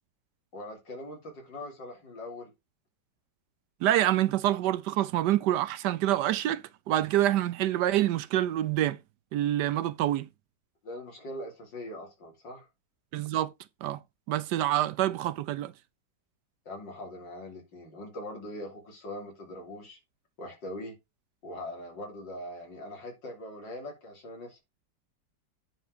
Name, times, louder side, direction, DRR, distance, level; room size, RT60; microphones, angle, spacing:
voice 1, 0.5-2.5 10.8-12.7 16.7-20.0 20.4-21.0 21.4-24.6, left 1 dB, 80° left, 3.6 m, -41 dB
voice 2, 3.8-9.0 9.3-10.3 13.1-13.5 13.8-14.0 14.3-15.7, right 13 dB, 75° right, 1.1 m, -26 dB
9.5 x 4.4 x 4.8 m
omnidirectional pair, 2.0 m